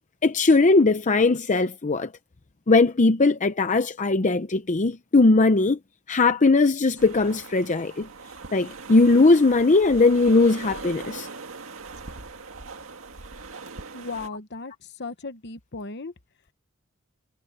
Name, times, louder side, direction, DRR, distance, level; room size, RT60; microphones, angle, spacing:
voice 1, 0.2-2.1 2.7-5.8 6.1-8.1 8.5-11.3, left 3 dB, 35° left, 0.7 m, -19 dB
sound 1, 7.0-14.3, right 4 dB, 75° right, 2.0 m, -40 dB
voice 2, 13.9-14.7 15.0-16.1, left 3 dB, 55° left, 1.2 m, -36 dB
head